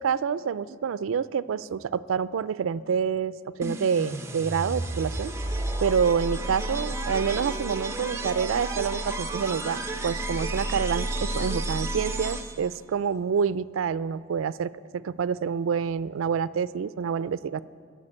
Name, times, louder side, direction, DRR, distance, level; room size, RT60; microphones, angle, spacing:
voice 1, 0.0-3.3 3.6-5.3 5.8-17.6, right 6 dB, 80° right, 17 dB, 0.4 m, -27 dB
sound 1, 3.6-12.8, right 2 dB, 15° right, 0.7 m, -31 dB
12.5 x 7.1 x 8.7 m, 2.1 s
head